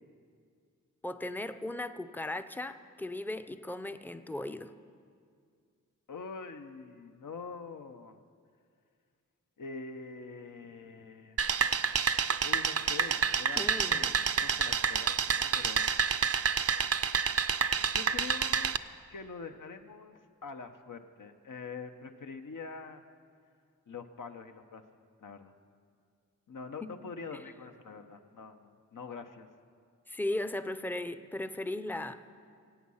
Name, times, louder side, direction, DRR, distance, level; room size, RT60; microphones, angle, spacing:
voice 1, 1.0-4.7 13.6-14.2 26.8-26.9 27.3-27.4 30.1-32.2, left 1 dB, 5° left, 10 dB, 0.5 m, -37 dB
voice 2, 6.1-8.2 9.6-11.4 12.4-15.9 17.7-18.8 19.1-23.0 23.9-24.8 25.2-25.5 26.5-29.5, left 4 dB, 75° left, 6 dB, 0.9 m, -44 dB
sound 1, 11.4-18.8, right 6 dB, 50° right, 0.5 m, -29 dB
23.0 x 8.7 x 5.6 m, 2.2 s
wide cardioid pair, 90°, 32 cm